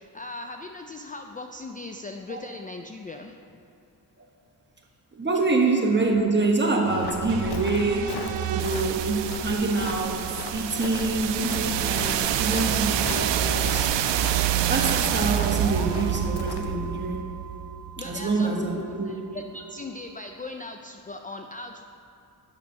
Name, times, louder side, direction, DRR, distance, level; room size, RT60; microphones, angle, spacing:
voice 1, 0.0-3.3 10.9-11.0 18.0-21.8, left 2 dB, 20° left, 5 dB, 0.4 m, -39 dB
voice 2, 5.1-8.1 8.5-13.9 14.7-17.2 18.0-19.1, right 3 dB, 25° right, 0 dB, 1.3 m, -26 dB
sound 1, 6.8-18.7, right 10 dB, 85° right, 0.5 m, -27 dB
Walk footsteps, 7.0-16.8, left 5 dB, 70° left, 0.7 m, -39 dB
6.8 x 5.8 x 6.4 m, 2.6 s
cardioid pair, 70°, 42 cm